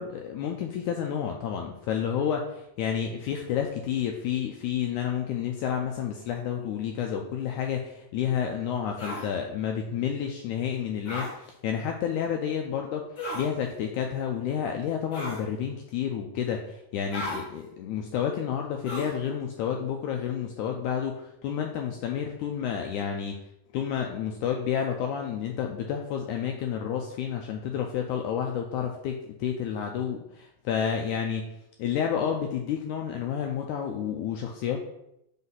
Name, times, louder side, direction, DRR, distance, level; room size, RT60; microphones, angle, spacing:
voice 1, 0.0-13.0 13.3-23.4 23.7-31.5 31.8-34.8, left 8 dB, 85° left, 2 dB, 1.8 m, -30 dB
sound 1, 9.0-9.3 11.1-11.3 13.2-13.5 15.1-15.5 17.1-17.4 18.8-19.2, left 1 dB, 40° left, 1.1 m, -34 dB
5.1 x 4.1 x 5.5 m, 0.81 s
omnidirectional pair, 4.0 m